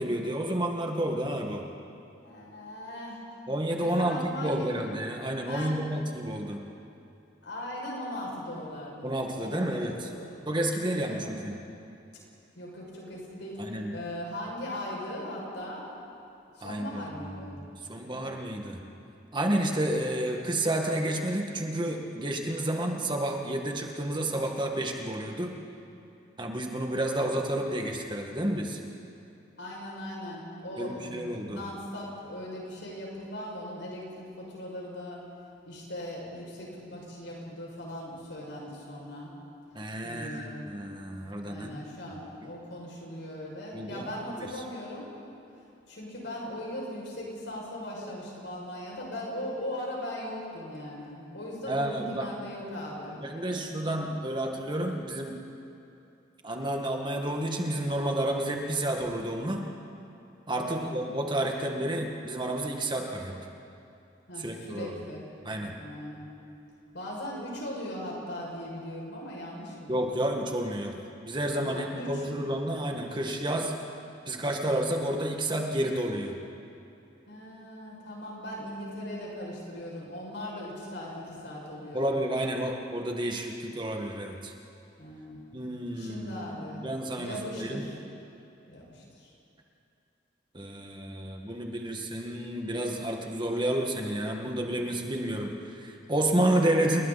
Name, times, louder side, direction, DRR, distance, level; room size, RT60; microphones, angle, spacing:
voice 1, 0.0-1.7 3.5-6.6 9.0-10.1 10.5-11.5 13.6-13.9 16.6-18.8 19.3-25.5 26.4-28.8 30.8-31.6 39.7-41.8 43.7-44.1 44.4-44.5 51.7-52.3 53.2-55.4 56.4-59.7 60.5-63.4 64.4-64.9 65.4-65.7 69.9-71.0 71.3-73.7 74.3-76.4 81.9-84.5 85.5-87.9 90.5-97.0, right 1 dB, 25° right, 2 dB, 1.9 m, -30 dB
voice 2, 2.2-3.2 3.8-4.7 5.4-5.8 7.4-9.1 9.4-10.4 10.8-11.3 12.6-13.6 13.9-15.9 16.5-17.5 26.3-26.4 29.6-35.2 35.6-39.3 40.0-40.6 41.4-45.1 45.9-53.2 53.5-53.8 60.5-60.9 64.3-65.2 65.7-66.3 66.9-70.3 71.6-72.1 77.3-82.1 85.0-85.4 86.0-86.9 87.2-88.0 88.7-89.3, left 1 dB, 80° left, -3 dB, 6.6 m, -39 dB
29.5 x 20.5 x 4.3 m, 2.7 s
head